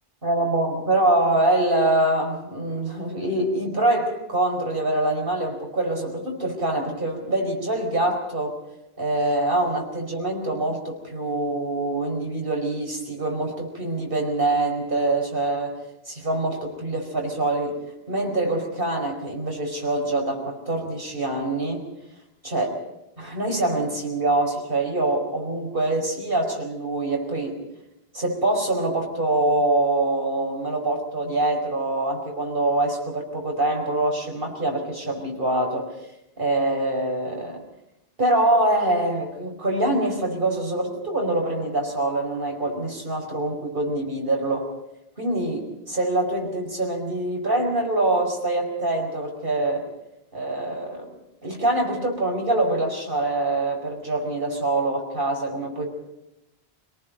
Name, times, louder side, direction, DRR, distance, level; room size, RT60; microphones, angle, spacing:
voice 1, 0.2-8.6 9.0-15.8 16.0-17.8 18.1-21.9 22.4-22.7 23.2-27.5 28.1-35.9 36.4-37.6 38.2-44.7 45.2-49.8 50.3-51.1 51.4-55.9, right 2 dB, 60° right, 1 dB, 5.1 m, -24 dB
27.0 x 18.5 x 5.2 m, 0.90 s
omnidirectional pair, 1.0 m